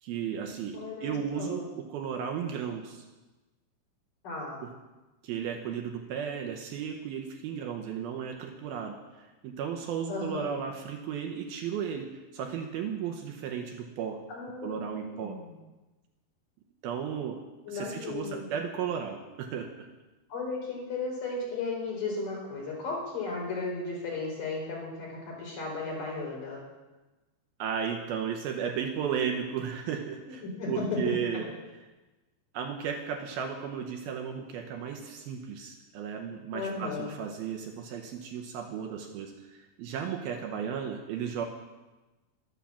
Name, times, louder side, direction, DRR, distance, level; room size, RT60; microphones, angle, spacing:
voice 1, 0.0-3.0 4.6-4.7 5.2-12.1 12.3-14.2 14.6-15.4 16.8-17.4 17.7-19.7 27.6-31.5 32.5-41.5, right 7 dB, 75° right, 3 dB, 2.5 m, -34 dB
voice 2, 0.7-1.6 4.2-4.6 10.1-10.6 14.3-15.5 17.7-18.5 20.3-26.6 30.3-31.0 36.5-37.1, left 3 dB, 55° left, -2 dB, 4.8 m, -35 dB
11.5 x 9.4 x 7.3 m, 1.1 s
omnidirectional pair, 4.8 m